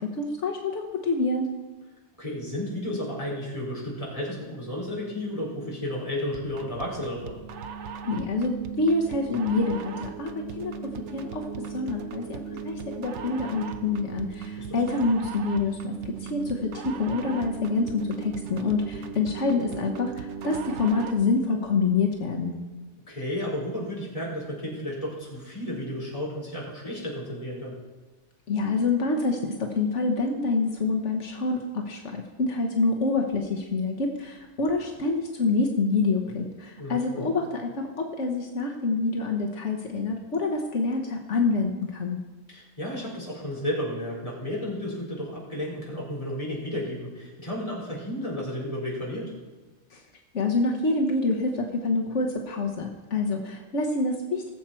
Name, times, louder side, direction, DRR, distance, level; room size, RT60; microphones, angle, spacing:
voice 1, 0.0-1.5 8.0-10.7 11.1-22.6 28.5-42.2 49.9-50.0 50.3-54.5, left 3 dB, 85° left, 3 dB, 1.4 m, -27 dB
voice 2, 2.2-7.4 14.7-14.8 23.1-27.7 36.8-37.3 42.5-49.3, left 1 dB, 30° left, -6 dB, 4.4 m, -32 dB
sound 1, 6.3-21.3, right 6 dB, 80° right, 1.1 m, -37 dB
20.5 x 7.5 x 4.5 m, 1.2 s
omnidirectional pair, 1.2 m